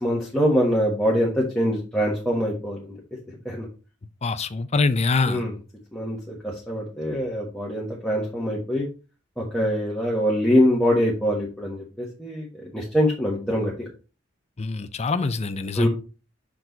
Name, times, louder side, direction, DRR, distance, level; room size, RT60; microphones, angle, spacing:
voice 1, 0.0-3.0 3.3-3.7 5.2-5.5 5.9-8.9 9.4-13.9 15.7-15.9, equal, 5° left, 1.3 m, -24 dB
voice 2, 4.2-5.4 14.6-15.9, left 3 dB, 35° left, 0.5 m, -24 dB
6.0 x 4.6 x 4.0 m
head